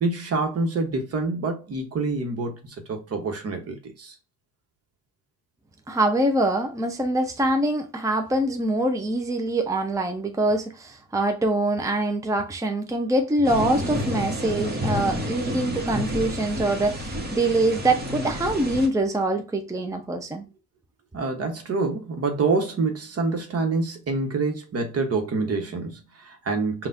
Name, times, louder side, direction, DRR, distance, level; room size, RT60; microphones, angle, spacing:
voice 1, 0.0-4.1 21.1-26.9, right 3 dB, 55° right, 1.2 m, -27 dB
voice 2, 5.9-20.4, right 1 dB, 10° right, 0.6 m, -24 dB
sound 1, 13.4-18.9, equal, 30° right, 1.2 m, -30 dB
5.4 x 2.5 x 2.6 m
cardioid pair, 90°, 30 cm